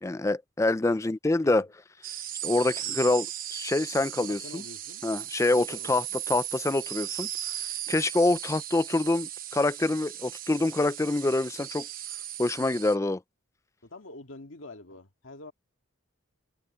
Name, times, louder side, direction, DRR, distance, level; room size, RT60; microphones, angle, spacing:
voice 1, 0.0-1.7 2.4-4.6 5.0-7.3 7.9-11.9 12.4-13.2, left 2 dB, 15° left, 0.3 m, -26 dB
sound 1, 2.0-12.9, right 12 dB, 45° right, 1.0 m, -37 dB
voice 2, 4.2-5.0 5.5-6.0 13.8-15.5, left 2 dB, 75° left, 1.9 m, -46 dB
head